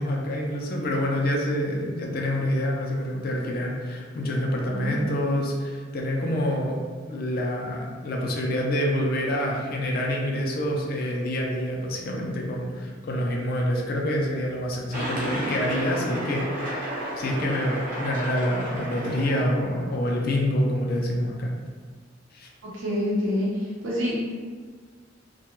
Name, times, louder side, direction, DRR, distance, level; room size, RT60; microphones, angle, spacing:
voice 1, 0.0-6.8 7.1-16.9 17.2-21.5 22.3-22.5, left 1 dB, 50° left, -1 dB, 0.4 m, -27 dB
sound 1, 14.9-19.9, right 1 dB, 50° right, 0.8 m, -32 dB
voice 2, 22.7-23.5 23.8-24.3, left 1 dB, 80° right, -7 dB, 0.7 m, -26 dB
2.2 x 2.2 x 3.0 m, 1.6 s
head